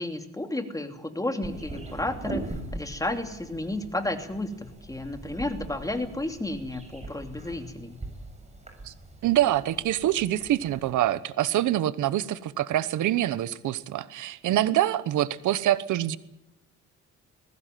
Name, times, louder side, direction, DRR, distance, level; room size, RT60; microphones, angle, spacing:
voice 1, 0.0-8.0, left 1 dB, 10° left, 6 dB, 2.9 m, -32 dB
sound 1, 1.4-10.9, right 2 dB, 20° right, 6.7 m, -41 dB
voice 2, 9.2-16.2, right 13 dB, 80° right, 16 dB, 1.0 m, -25 dB
20.5 x 17.0 x 9.2 m, 0.90 s
cardioid pair, 90°, 30 cm